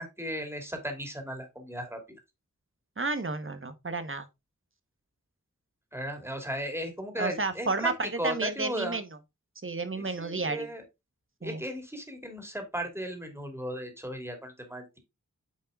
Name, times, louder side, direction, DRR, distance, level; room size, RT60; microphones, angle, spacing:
voice 1, 0.0-2.0 5.9-7.9 8.2-9.0 9.9-10.8 11.4-15.0, equal, 10° right, 2.7 m, -36 dB
voice 2, 3.0-4.3 7.2-9.0 9.6-10.7 11.4-11.6, right 3 dB, 45° right, 1.2 m, -31 dB
9.3 x 5.4 x 2.4 m
wide cardioid pair, 65°, 30 cm